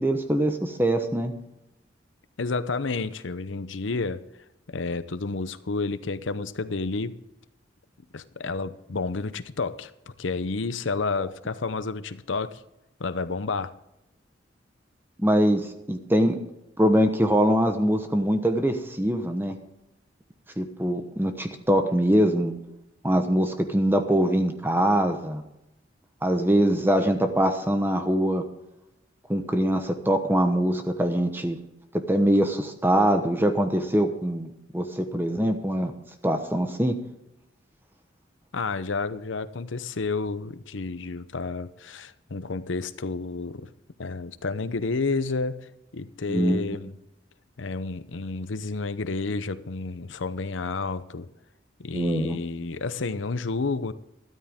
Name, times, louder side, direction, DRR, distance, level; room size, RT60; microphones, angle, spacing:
voice 1, 0.0-1.3 15.2-16.4 16.8-19.6 20.6-22.5 23.0-25.4 26.2-28.4 29.3-31.6 32.1-35.9 36.2-36.9 46.3-46.6 51.9-52.4, right 1 dB, 10° right, 1.0 m, -23 dB
voice 2, 2.4-4.2 4.7-7.2 8.1-9.9 10.2-12.6 13.0-13.7 38.5-43.7 44.0-47.0 47.6-51.3 51.8-53.9, left 3 dB, 85° left, 0.7 m, -30 dB
13.0 x 13.0 x 3.6 m
head